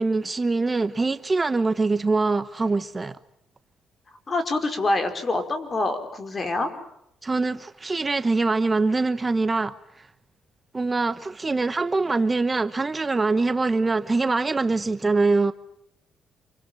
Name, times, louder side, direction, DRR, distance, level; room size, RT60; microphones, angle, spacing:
voice 1, 0.0-3.2 7.2-10.1 10.7-15.5, right 3 dB, 25° right, 1.0 m, -23 dB
voice 2, 4.3-6.7, left 2 dB, 35° left, 5.0 m, -26 dB
27.5 x 24.5 x 7.6 m
cardioid pair, 90°, 0 cm